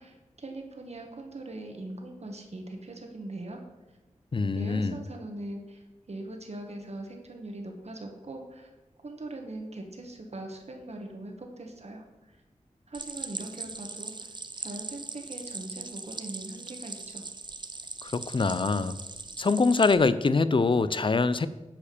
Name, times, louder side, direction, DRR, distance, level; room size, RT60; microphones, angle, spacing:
voice 1, 0.0-3.6 4.5-5.8 6.1-8.7 9.0-12.0 12.9-14.3 14.6-17.2, right 2 dB, 55° right, 3 dB, 1.4 m, -41 dB
voice 2, 4.3-5.0 18.0-19.0 19.4-21.5, left 4 dB, 40° left, 15 dB, 0.5 m, -24 dB
Stream, 12.9-19.9, right 3 dB, 35° right, 0.6 m, -40 dB
8.8 x 4.9 x 7.0 m, 1.1 s
wide cardioid pair, 55°, 13 cm